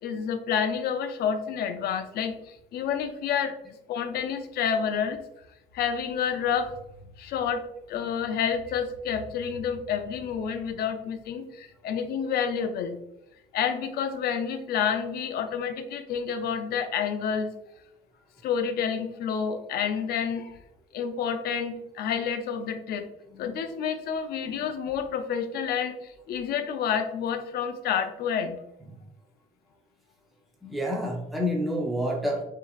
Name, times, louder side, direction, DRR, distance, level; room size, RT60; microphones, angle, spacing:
voice 1, 0.0-3.5 3.9-5.2 5.7-6.7 7.2-13.0 13.5-17.5 18.4-20.5 20.9-23.1 23.4-28.6, left 7 dB, 70° left, 7 dB, 0.6 m, -29 dB
voice 2, 30.6-32.4, equal, ahead, -1 dB, 0.7 m, -28 dB
5.7 x 2.9 x 2.4 m, 0.84 s
cardioid pair, 110°, 17 cm